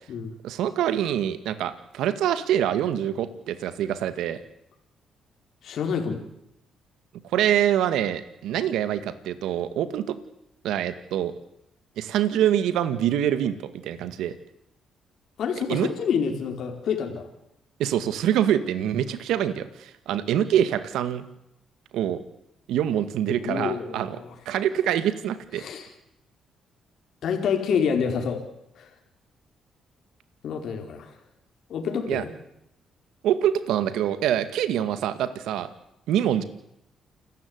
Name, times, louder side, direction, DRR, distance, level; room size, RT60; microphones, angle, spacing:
voice 1, 0.4-4.4 7.3-10.2 10.6-11.3 12.0-14.3 15.7-15.9 17.8-21.2 21.9-22.2 22.7-24.2 24.5-25.6 32.1-32.2 33.2-35.7 36.1-36.4, right 10 dB, 85° right, 12 dB, 2.1 m, -25 dB
voice 2, 5.6-6.2 15.4-17.3 23.4-24.3 25.6-25.9 27.2-28.4 28.7-28.9 30.4-31.1 31.7-32.3, left 6 dB, 70° left, 4 dB, 4.4 m, -27 dB
29.0 x 14.0 x 9.7 m, 0.82 s
cardioid pair, 90°, 0 cm